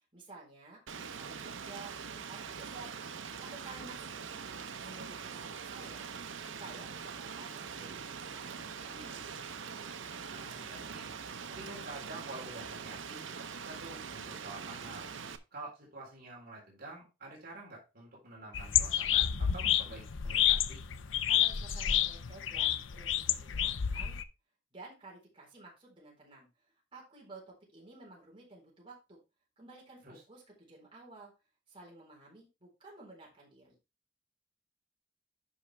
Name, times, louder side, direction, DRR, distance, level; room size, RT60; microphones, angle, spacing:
voice 1, 0.1-2.0 2.3-2.9 3.4-4.4 4.8-6.2 6.4-9.4 21.2-24.2 24.7-26.5 26.9-29.2 29.6-31.3 31.7-33.7, right 2 dB, 30° right, -3 dB, 4.2 m, -53 dB
Rain, 0.9-15.4, right 6 dB, 85° right, 0.8 m, -43 dB
voice 2, 10.3-11.2 11.5-15.1 15.5-20.8 30.0-30.2, right 2 dB, 55° right, -3 dB, 3.7 m, -48 dB
sound 1, 18.5-24.2, left 10 dB, 85° left, 0.6 m, -29 dB
10.0 x 5.9 x 3.3 m, 0.27 s
head